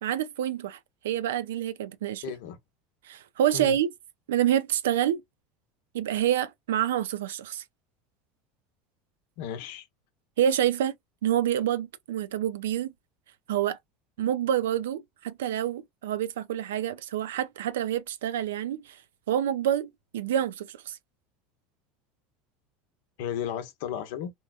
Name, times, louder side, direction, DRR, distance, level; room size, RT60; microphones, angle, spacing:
voice 1, 0.0-0.8 1.0-2.2 3.1-3.9 4.3-5.2 5.9-7.6 10.4-10.9 11.2-12.9 13.5-13.8 14.2-18.8 19.3-21.0, right 10 dB, 90° right, 0.4 m, -27 dB
voice 2, 2.2-2.6 3.5-3.8 9.4-9.9 23.2-24.3, left 9 dB, 75° left, 0.8 m, -34 dB
2.9 x 2.2 x 2.3 m
supercardioid pair, 105°, 0 cm